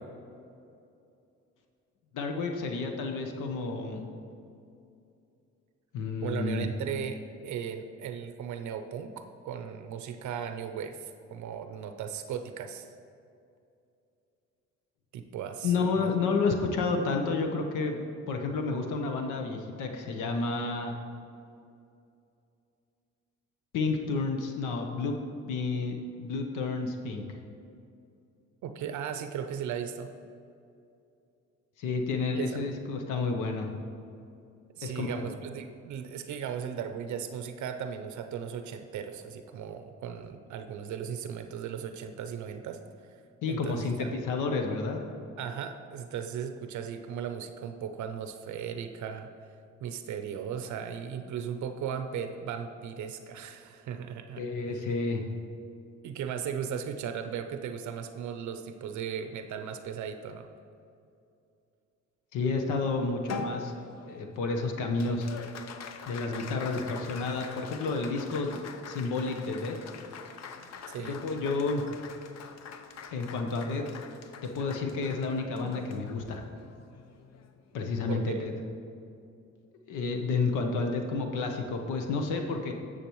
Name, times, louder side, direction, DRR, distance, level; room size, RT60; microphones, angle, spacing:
voice 1, 2.1-4.1 5.9-6.7 15.6-18.0 18.3-20.9 23.7-25.2 25.5-27.2 31.8-33.7 34.8-35.3 43.4-45.0 54.4-55.2 62.3-63.8 64.1-65.3 66.1-68.6 68.9-69.8 71.0-71.8 73.1-73.8 74.4-76.4 77.7-78.5 79.9-82.7, left 4 dB, 90° left, 4 dB, 0.9 m, -30 dB
voice 2, 6.2-12.9 15.1-16.1 28.6-30.1 32.3-32.6 34.8-42.8 43.1-43.2 43.5-44.2 45.4-49.3 49.8-54.4 54.7-54.8 56.0-60.5 70.9-71.2 78.1-78.4, right 8 dB, 70° right, 7 dB, 0.6 m, -37 dB
Applause, 63.3-77.9, left 5 dB, 60° left, 0.6 m, -44 dB
10.0 x 6.8 x 3.1 m, 2.6 s
cardioid pair, 90°, 30 cm